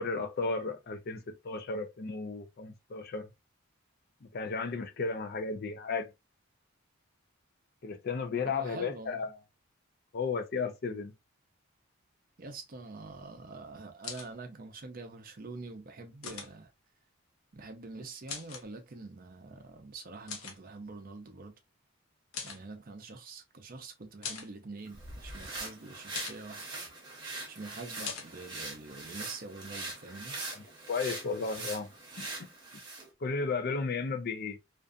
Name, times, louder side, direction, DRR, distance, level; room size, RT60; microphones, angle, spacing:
voice 1, 0.0-3.3 4.2-6.1 7.8-9.3 10.1-11.1 28.0-28.1 30.9-31.9 32.2-32.3 33.2-34.6, left 4 dB, 50° left, 0.4 m, -34 dB
voice 2, 8.4-9.2 12.4-16.7 17.5-21.5 22.4-26.6 27.5-30.4, right 3 dB, 45° right, 0.5 m, -45 dB
sound 1, 14.0-14.3 16.2-16.5 18.3-18.7 20.3-20.6 22.3-22.6 24.2-24.5 26.1-26.4 28.0-28.3, left 6 dB, 90° left, 0.7 m, -40 dB
sound 2, 24.9-33.1, right 2 dB, 20° right, 0.9 m, -42 dB
2.5 x 2.3 x 2.4 m
head